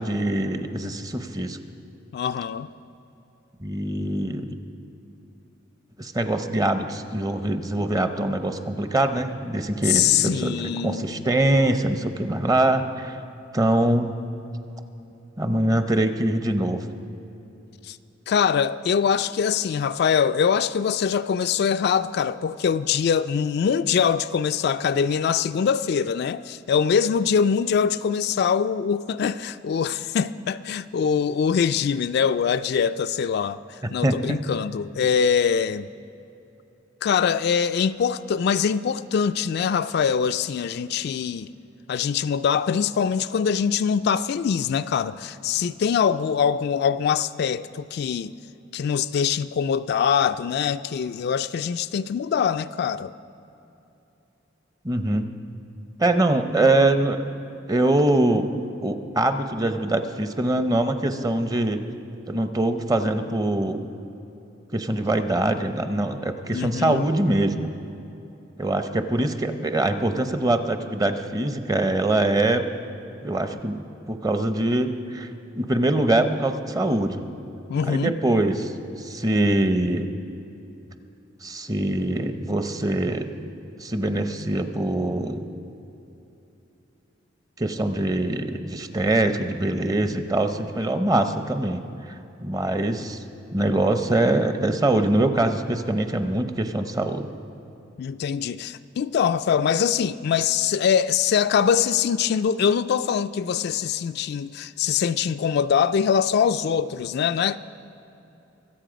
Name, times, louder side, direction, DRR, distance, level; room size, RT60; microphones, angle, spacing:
voice 1, 0.0-1.6 3.6-4.5 6.0-13.2 13.5-14.2 15.4-16.9 34.0-34.4 54.8-55.3 56.0-57.2 57.7-58.5 58.8-61.8 62.3-63.9 64.7-67.7 68.6-72.6 73.2-75.3 75.6-77.3 77.8-78.7 79.0-80.1 81.4-83.3 83.8-85.5 87.6-91.8 92.4-93.2 93.5-97.3, right 1 dB, 20° right, 0.6 m, -23 dB
voice 2, 2.1-2.7 9.9-11.2 17.8-18.0 18.3-33.6 33.9-35.9 37.0-41.5 41.9-48.3 48.7-53.1 66.5-67.1 77.7-78.1 98.0-107.6, left 7 dB, 60° left, 0.3 m, -23 dB
23.0 x 8.3 x 5.1 m
head